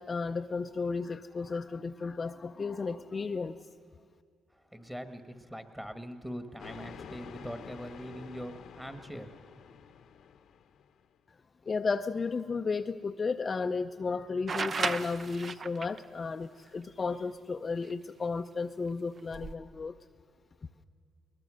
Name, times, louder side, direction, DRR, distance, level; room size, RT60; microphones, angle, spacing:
voice 1, 0.0-3.6 11.7-19.9, left 4 dB, 35° left, 6 dB, 0.5 m, -33 dB
voice 2, 4.7-9.3, equal, 5° right, 9 dB, 1.5 m, -42 dB
sound 1, 6.6-11.1, left 7 dB, 70° left, 0.9 m, -49 dB
sound 2, 14.5-16.0 17.9-18.0 19.2-19.5, right 4 dB, 40° right, 0.7 m, -34 dB
21.0 x 20.0 x 6.3 m, 2.3 s
cardioid pair, 90°, 0 cm